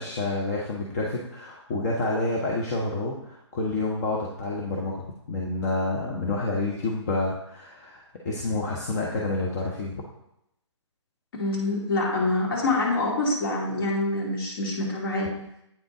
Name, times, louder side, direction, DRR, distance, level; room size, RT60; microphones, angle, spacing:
voice 1, 0.0-10.0, left 2 dB, 35° left, -3 dB, 0.9 m, -29 dB
voice 2, 11.3-15.3, left 2 dB, 50° left, -3 dB, 2.4 m, -26 dB
8.8 x 3.8 x 3.7 m, 0.81 s
figure-of-eight pair, 140°, 15 cm